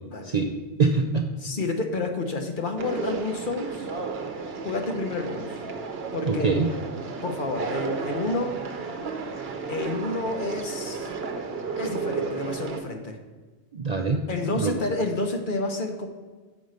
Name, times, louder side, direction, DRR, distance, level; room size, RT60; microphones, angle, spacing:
voice 1, 0.2-1.3 6.3-6.7 13.7-14.3 14.5-14.8, right 4 dB, 50° right, 4 dB, 0.5 m, -24 dB
voice 2, 1.4-3.9 4.6-5.6 6.1-6.6 7.2-8.6 9.7-11.1 11.8-13.2 14.3-16.1, left 2 dB, 50° left, 4 dB, 1.0 m, -29 dB
Conversation, 2.8-12.8, right 4 dB, 65° right, 1.0 m, -33 dB
7.3 x 5.3 x 6.3 m, 1.4 s
omnidirectional pair, 1.2 m